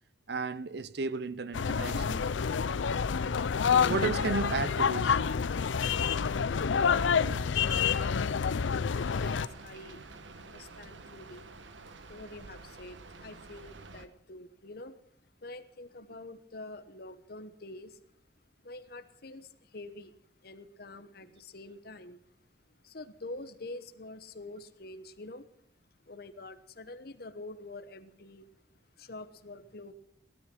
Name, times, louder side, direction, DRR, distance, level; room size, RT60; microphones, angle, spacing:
voice 1, 0.3-2.2 3.9-5.2, right 4 dB, 60° right, 0.6 m, -33 dB
sound 1, 1.5-9.5, left 6 dB, 80° left, 0.5 m, -28 dB
voice 2, 8.9-10.0 10.4-11.5 12.1-15.0 15.4-18.0 18.6-20.1 20.4-22.2 22.8-25.5 26.1-28.4 29.0-29.9, left 2 dB, 55° left, 1.1 m, -46 dB
Rain, 8.9-14.1, right 3 dB, 80° right, 1.2 m, -49 dB
17.0 x 12.5 x 6.1 m
head